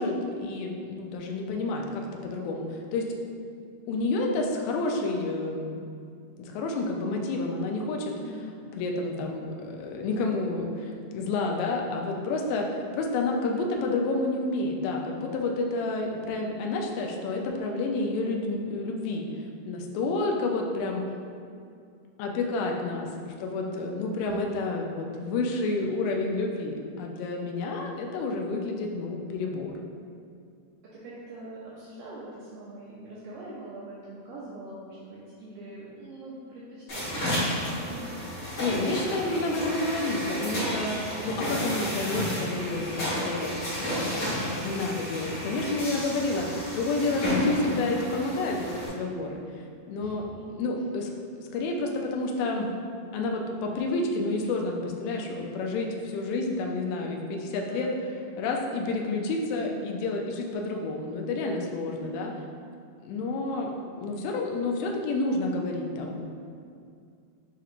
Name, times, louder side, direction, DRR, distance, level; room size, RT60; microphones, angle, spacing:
voice 1, 0.0-3.1 3.9-5.8 6.4-8.1 8.8-12.7 12.9-19.3 19.7-21.0 22.2-29.7 38.6-43.6 43.9-44.1 44.5-50.2 50.6-51.1 51.4-52.7 53.1-57.9 58.4-62.3 63.0-63.7 64.0-66.2, left 2 dB, 80° left, 1 dB, 2.0 m, -29 dB
voice 2, 8.1-8.4 12.6-13.0 24.2-24.5 30.9-38.0 41.1-41.6 43.9-44.3 50.0-50.5 57.6-58.2 61.9-62.2, right 2 dB, 80° right, -8 dB, 1.8 m, -43 dB
sound 1, 36.9-48.9, equal, 55° left, 1.4 m, -32 dB
7.0 x 2.9 x 2.4 m, 2.4 s
omnidirectional pair, 4.4 m